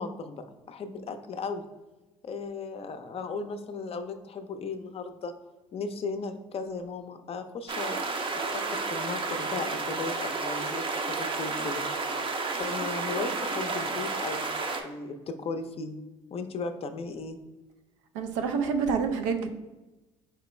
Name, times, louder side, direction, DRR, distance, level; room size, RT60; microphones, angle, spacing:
voice 1, 0.0-1.6 2.2-5.3 5.7-8.0 8.3-11.8 12.6-14.5 14.8-16.0 16.3-17.4, left 4 dB, 40° left, 0.5 m, -36 dB
sound 1, 7.7-14.8, right 3 dB, 35° right, 0.6 m, -31 dB
voice 2, 18.1-19.5, right 5 dB, 85° right, 0.4 m, -27 dB
4.4 x 2.9 x 3.1 m
hypercardioid pair, 65°, 15 cm